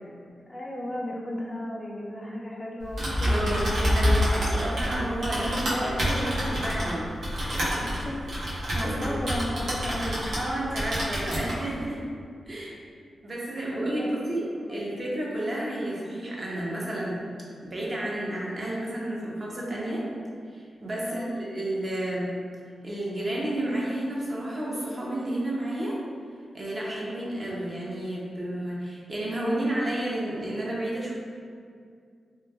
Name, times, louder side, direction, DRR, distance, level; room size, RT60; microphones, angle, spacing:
voice 1, 0.3-4.0 5.3-6.0 7.8-8.2 8.4-10.2 12.5-12.7 14.0-14.1 14.7-14.9 21.0-21.4, left 1 dB, 20° left, -3 dB, 0.3 m, -35 dB
Typing, 2.8-10.5 10.8-11.6, equal, 80° right, 0.7 m, -27 dB
voice 2, 3.2-7.1 8.8-9.1 10.3-12.0 12.5-12.8 13.2-17.2 17.6-20.1 20.5-22.3 22.8-26.0 26.5-31.1, right 1 dB, 40° right, -4 dB, 0.6 m, -31 dB
3.0 x 2.2 x 2.2 m, 2.2 s
cardioid pair, 80°, 0 cm